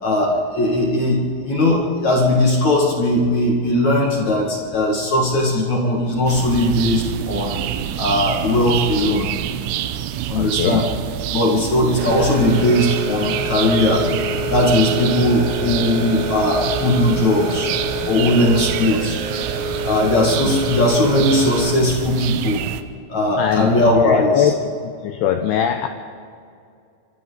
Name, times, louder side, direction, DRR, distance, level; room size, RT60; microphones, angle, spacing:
voice 1, 0.0-7.6 8.0-9.3 10.3-10.8 11.3-14.1 14.5-17.7 18.0-19.2 19.8-22.6 23.1-24.5, left 1 dB, 45° left, -2 dB, 2.7 m, -18 dB
sound 1, 6.3-22.8, right 11 dB, 85° right, 3.4 m, -27 dB
voice 2, 10.4-10.9 15.6-15.7 20.4-20.6 23.4-24.5 24.8-25.9, left 10 dB, 90° left, 6 dB, 2.3 m, -22 dB
sound 2, 12.0-21.7, equal, 65° right, 4.3 m, -27 dB
26.0 x 25.0 x 4.1 m, 2.3 s
omnidirectional pair, 5.7 m